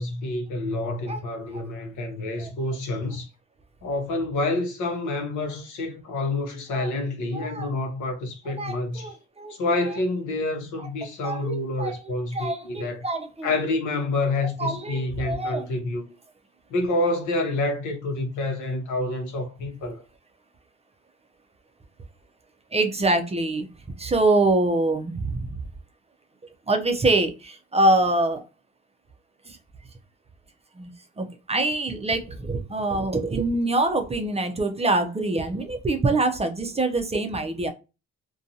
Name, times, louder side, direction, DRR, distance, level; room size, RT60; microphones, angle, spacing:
voice 1, 0.0-3.3 3.8-9.2 9.6-13.0 13.4-16.1 16.7-20.0, left 2 dB, 80° left, 0.8 m, -28 dB
voice 2, 7.3-7.7 8.5-9.6 11.2-13.5 14.6-15.6 22.7-23.7 24.0-25.6 26.7-28.4 29.5-29.6 30.8-37.7, right 2 dB, 20° right, 0.4 m, -25 dB
2.6 x 2.2 x 2.6 m
cardioid pair, 90°, 30 cm